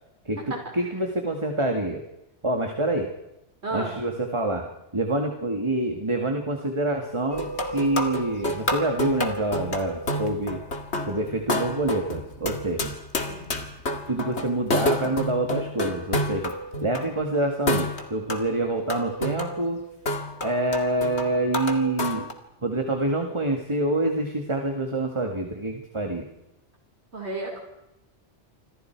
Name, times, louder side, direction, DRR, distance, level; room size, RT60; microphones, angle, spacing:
voice 1, 0.3-2.0 2.4-3.1 3.7-10.6 11.0-12.9 14.1-16.5 16.8-19.8 20.4-22.3 22.6-26.3, right 2 dB, 25° right, 2 dB, 2.1 m, -26 dB
voice 2, 3.6-4.0 13.3-13.5 27.1-27.6, right 2 dB, 60° right, 1 dB, 5.5 m, -32 dB
sound 1, 7.3-17.1 17.7-22.3, left 1 dB, 65° left, 2.4 m, -29 dB
28.0 x 25.0 x 4.7 m, 0.88 s
omnidirectional pair, 1.2 m